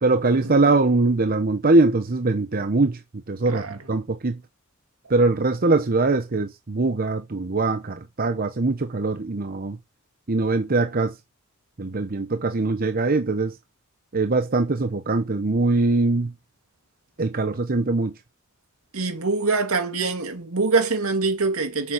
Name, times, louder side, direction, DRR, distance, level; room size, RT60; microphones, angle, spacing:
voice 1, 0.0-3.0 3.3-4.4 5.1-9.8 10.3-11.1 11.8-13.5 14.1-16.3 17.2-18.1, right 3 dB, 45° right, 0.9 m, -22 dB
voice 2, 3.5-3.8 18.9-21.9, right 4 dB, 80° right, 2.2 m, -24 dB
7.2 x 7.1 x 6.5 m
head